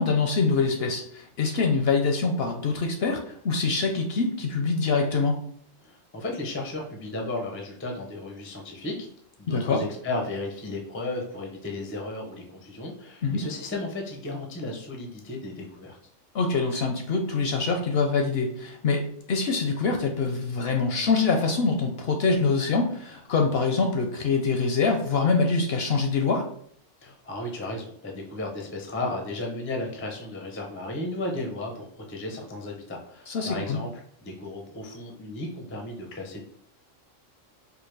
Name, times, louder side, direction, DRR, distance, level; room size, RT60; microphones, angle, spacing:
voice 1, 0.0-5.4 9.5-9.8 13.2-13.4 16.3-26.5 33.3-33.8, left 4 dB, 65° left, 3 dB, 0.6 m, -25 dB
voice 2, 5.8-9.1 9.4-16.0 27.0-33.9 34.2-36.4, left 2 dB, 20° left, 1 dB, 0.3 m, -34 dB
4.7 x 2.1 x 3.2 m, 0.64 s
omnidirectional pair, 1.3 m